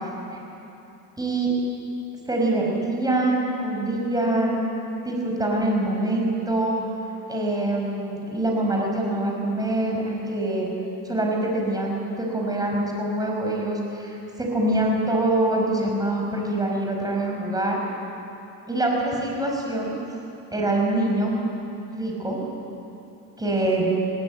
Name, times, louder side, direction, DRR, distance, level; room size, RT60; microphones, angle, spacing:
voice 1, 1.2-1.5 2.3-4.6 5.0-6.8 7.3-10.7 11.0-17.8 18.7-19.9 20.5-21.3 21.9-22.4 23.4-23.9, right 1 dB, 10° right, -1 dB, 5.2 m, -24 dB
19.5 x 18.5 x 9.4 m, 3.0 s
cardioid pair, 120°, 41 cm